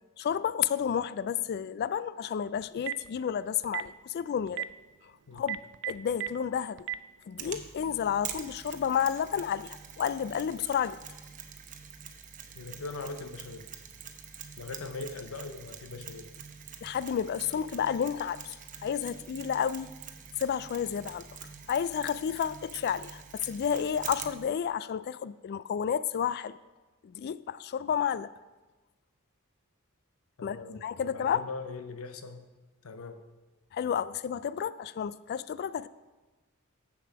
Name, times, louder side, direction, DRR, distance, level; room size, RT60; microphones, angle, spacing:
voice 1, 0.2-4.7 5.3-5.6 5.9-6.9 7.3-11.0 16.8-18.5 18.8-19.9 20.4-21.3 21.7-26.6 27.0-28.3 30.4-31.5 33.7-35.9, left 8 dB, 50° left, 0.3 m, -31 dB
Telephone, 2.6-3.1 3.6-3.9 4.5-4.6 5.4-6.3 6.8-7.0, right 13 dB, 55° right, 0.3 m, -32 dB
Mechanisms, 7.4-24.5, right 7 dB, 40° right, 0.7 m, -45 dB
voice 2, 12.6-13.7 14.6-16.3 30.4-32.4 32.8-33.2, left 3 dB, 80° left, 0.7 m, -41 dB
7.6 x 7.0 x 5.9 m
head